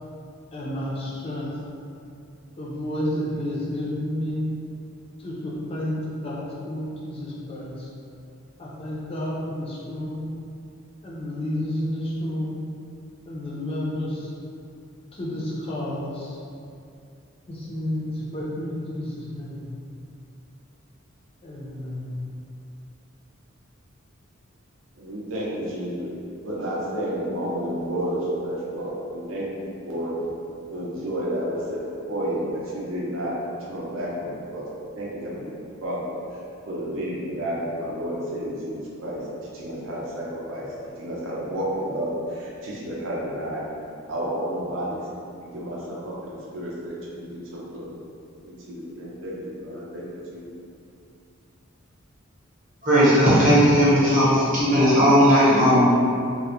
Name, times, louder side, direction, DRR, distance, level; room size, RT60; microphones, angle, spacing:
voice 1, 0.5-1.6 2.6-4.6 5.2-7.9 8.6-10.3 11.0-12.6 13.3-14.3 15.1-16.4 17.5-19.6 21.4-22.2, left 1 dB, 30° left, -6 dB, 0.4 m, -30 dB
voice 2, 25.0-26.1 26.4-30.1 30.7-31.8 32.1-33.3 33.7-34.7 35.0-35.5 35.8-36.1 36.7-39.2 39.5-40.7 41.0-43.6 44.1-45.0 45.4-47.9 48.4-50.1 50.3-50.5, equal, 65° right, -6 dB, 0.5 m, -31 dB
voice 3, 52.8-55.8, equal, 40° right, -10 dB, 0.8 m, -17 dB
2.3 x 2.0 x 2.9 m, 2.5 s
head